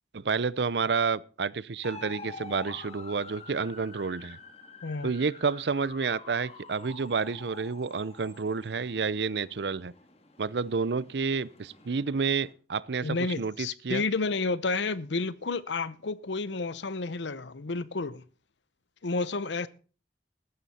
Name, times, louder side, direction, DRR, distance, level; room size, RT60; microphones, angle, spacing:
voice 1, 0.1-4.4 5.0-9.9 10.4-14.0, right 5 dB, 70° right, 0.6 m, -30 dB
sound 1, 1.8-12.5, left 4 dB, 35° left, 1.9 m, -48 dB
voice 2, 4.8-5.1 13.0-18.2 19.0-19.7, left 3 dB, 85° left, 0.8 m, -31 dB
14.5 x 12.5 x 4.3 m
head